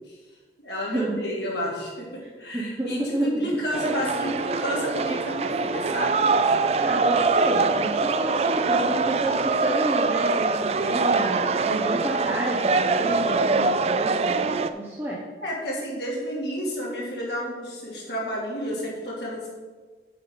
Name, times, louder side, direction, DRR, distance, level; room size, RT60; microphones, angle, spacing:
voice 1, 0.6-2.1 2.4-6.2 15.4-19.5, equal, 70° left, -4 dB, 2.8 m, -30 dB
voice 2, 2.5-3.4 6.8-10.5 10.8-15.2, right 1 dB, 15° right, -5 dB, 0.9 m, -30 dB
sound 1, 3.7-14.7, right 4 dB, 35° right, 0.3 m, -23 dB
7.9 x 5.7 x 5.6 m, 1.4 s
head